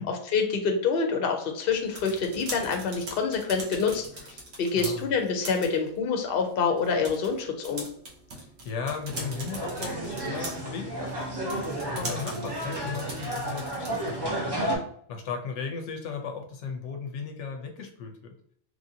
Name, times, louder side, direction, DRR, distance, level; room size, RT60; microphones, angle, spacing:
voice 1, 0.0-7.8, left 5 dB, 60° left, 4 dB, 0.8 m, -27 dB
sound 1, 1.7-14.2, right 1 dB, 80° right, 1.1 m, -42 dB
voice 2, 4.7-5.1 8.3-14.5 15.1-18.3, left 5 dB, 85° left, 4 dB, 0.9 m, -36 dB
sound 2, 9.1-14.8, right 1 dB, 25° right, 0.7 m, -32 dB
3.0 x 2.6 x 2.7 m, 0.65 s
omnidirectional pair, 1.2 m